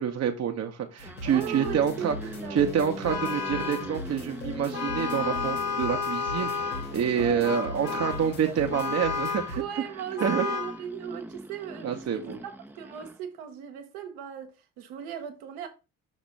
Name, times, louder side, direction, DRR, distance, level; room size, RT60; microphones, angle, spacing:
voice 1, 0.0-2.2 2.5-9.6 10.2-10.5 11.8-12.4, right 8 dB, 35° right, 0.8 m, -27 dB
sound 1, 0.9-13.2, right 1 dB, 5° right, 0.5 m, -42 dB
sound 2, 1.0-9.6, left 2 dB, 90° left, 0.9 m, -40 dB
voice 2, 1.2-2.6 5.9-6.0 7.1-7.5 7.9-8.6 9.5-15.7, right 9 dB, 65° right, 1.1 m, -38 dB
Vehicle horn car horn honking, 3.0-3.9 4.7-6.9 7.4-8.3 8.7-9.6 10.2-10.8, left 5 dB, 35° left, 1.2 m, -31 dB
5.9 x 3.0 x 5.4 m
figure-of-eight pair, 45°, 42 cm